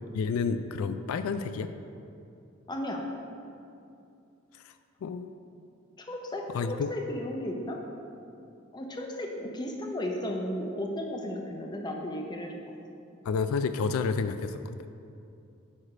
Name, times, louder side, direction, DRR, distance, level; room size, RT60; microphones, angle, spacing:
voice 1, 0.1-1.7 4.6-4.7 5.0-5.3 6.5-6.9 13.3-14.9, left 5 dB, 85° left, 13 dB, 0.3 m, -30 dB
voice 2, 2.7-3.0 6.0-7.8 8.7-12.8, left 1 dB, 20° left, 1 dB, 0.6 m, -34 dB
8.5 x 3.3 x 4.9 m, 2.6 s
head